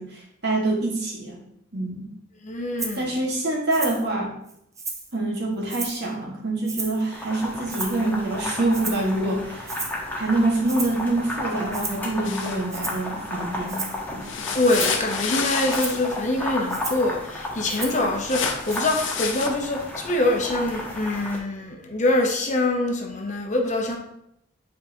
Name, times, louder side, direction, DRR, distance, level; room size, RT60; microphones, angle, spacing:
voice 1, 0.0-1.4 1.7-2.1 3.0-4.3 5.1-9.7 10.2-13.9 14.1-14.4, right 2 dB, 55° right, -2 dB, 1.7 m, -26 dB
voice 2, 2.4-3.1 14.6-24.0, left 2 dB, 40° left, 2 dB, 1.0 m, -24 dB
Rattle (instrument), 2.8-3.0 3.7-4.1 4.5-5.1 5.7-6.1 6.7-7.1 7.7-8.1 8.7-9.1 9.7-10.0 10.7-11.0 11.7-12.1 12.7-13.1 13.7-14.0 14.7-15.0 15.7-16.0 16.7-17.1 17.7-18.1 18.7-18.8, right 4 dB, 15° right, 0.6 m, -33 dB
sound 1, 7.1-21.4, left 1 dB, 10° left, 1.3 m, -33 dB
sound 2, 12.2-12.6 14.2-16.2 18.3-19.5, left 6 dB, 65° left, 0.8 m, -29 dB
8.5 x 4.7 x 2.9 m, 0.77 s
head